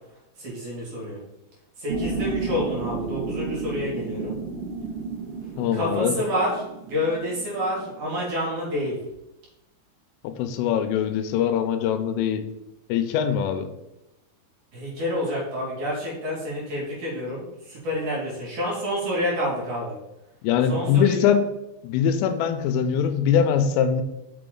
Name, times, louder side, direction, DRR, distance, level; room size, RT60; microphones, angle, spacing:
voice 1, 0.4-1.2 1.8-4.3 5.7-9.0 14.7-19.9 20.7-21.3, left 1 dB, 45° right, -5 dB, 3.0 m, -28 dB
sound 1, 1.9-8.2, right 4 dB, 80° right, 3.7 m, -32 dB
voice 2, 5.6-6.1 10.2-12.4 12.9-13.7 20.4-21.5 21.8-24.0, left 8 dB, 85° left, 9 dB, 3.2 m, -22 dB
6.3 x 6.0 x 3.8 m, 0.92 s
omnidirectional pair, 5.8 m